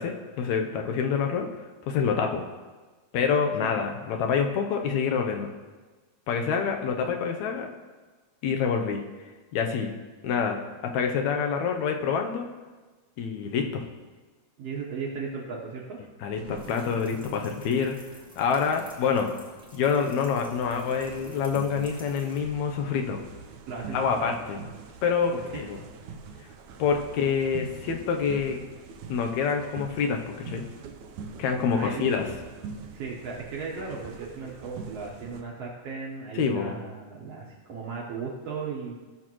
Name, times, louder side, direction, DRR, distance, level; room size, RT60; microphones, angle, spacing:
voice 1, 0.0-1.5 1.9-2.4 3.1-5.5 6.3-7.7 8.4-9.0 9.5-9.9 10.2-12.5 13.2-13.8 16.2-17.9 18.4-19.3 19.7-23.2 23.9-24.6 25.0-25.8 26.8-28.6 29.1-30.7 31.4-32.3 36.4-36.8, left 6 dB, 80° left, 4 dB, 2.1 m, -26 dB
voice 2, 14.6-16.0 23.7-24.3 25.3-25.6 31.7-32.0 32.9-38.9, right 5 dB, 65° right, -3 dB, 2.0 m, -36 dB
sound 1, 16.3-17.7 20.5-35.4, right 5 dB, 80° right, 2.1 m, -44 dB
sound 2, 16.5-22.4, equal, 5° right, 0.5 m, -51 dB
16.5 x 6.5 x 3.1 m, 1.3 s
omnidirectional pair, 3.3 m